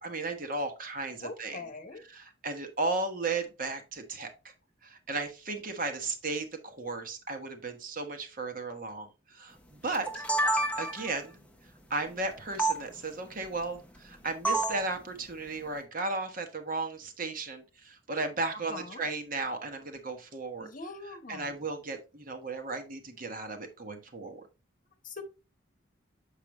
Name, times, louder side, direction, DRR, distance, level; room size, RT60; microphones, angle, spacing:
voice 1, 0.0-4.3 4.8-10.2 10.8-11.4 11.9-20.7 21.0-24.4, right 3 dB, 45° right, 6 dB, 1.1 m, -35 dB
voice 2, 1.2-2.0 18.7-19.0 20.6-21.5 25.0-25.2, left 3 dB, 40° left, 7 dB, 1.0 m, -42 dB
sound 1, 9.9-11.2 12.6-12.8 14.4-14.9, right 2 dB, 5° left, 0.7 m, -28 dB
7.4 x 5.0 x 3.0 m, 0.29 s
head